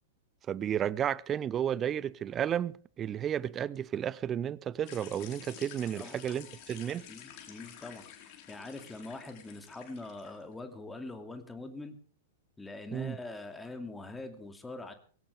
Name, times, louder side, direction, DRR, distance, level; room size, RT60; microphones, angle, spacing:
voice 1, 0.5-7.1 12.9-13.2, right 9 dB, 25° right, 0.6 m, -32 dB
sound 1, 4.8-10.4, left 10 dB, 40° left, 4.2 m, -50 dB
voice 2, 7.1-8.1 8.5-12.0 12.6-14.9, left 2 dB, 10° left, 2.4 m, -43 dB
20.5 x 17.5 x 3.5 m
figure-of-eight pair, 100°, 0 cm